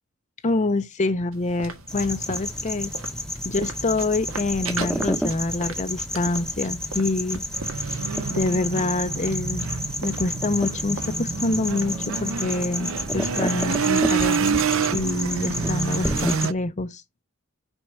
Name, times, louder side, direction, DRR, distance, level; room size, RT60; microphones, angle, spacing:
voice 1, 0.4-2.9 3.4-7.4 8.3-9.7 10.0-14.6 14.9-17.0, left 2 dB, 35° left, 0.6 m, -26 dB
sound 1, 1.3-14.1, right 3 dB, 85° right, 1.7 m, -40 dB
sound 2, 1.9-16.5, left 1 dB, 5° left, 0.9 m, -30 dB
sound 3, 7.5-16.5, right 6 dB, 70° right, 0.5 m, -28 dB
6.3 x 5.3 x 4.5 m
head